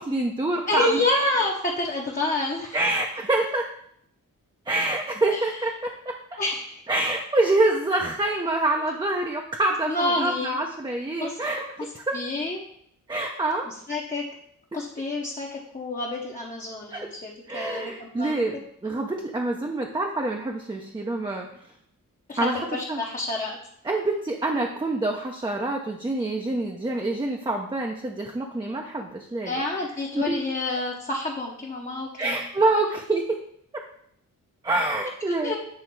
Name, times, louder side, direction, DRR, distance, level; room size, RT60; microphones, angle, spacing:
voice 1, 0.0-1.0 2.7-3.7 4.7-6.4 6.9-11.7 11.9-12.2 13.1-13.7 16.9-17.1 17.5-18.6 18.8-21.5 22.4-22.6 22.9-23.0 23.8-29.6 30.1-30.3 32.2-33.4 33.7-33.8 34.6-35.5, right 2 dB, 15° right, 1 dB, 0.5 m, -26 dB
voice 2, 0.7-2.8 5.3-5.6 6.4-6.8 9.9-10.6 11.2-11.4 12.1-12.7 13.9-14.3 14.7-18.4 22.3-23.6 29.5-32.4 35.4-35.6, left 2 dB, 25° left, -2 dB, 0.8 m, -28 dB
7.6 x 3.2 x 4.6 m, 0.69 s
wide cardioid pair, 100°, 34 cm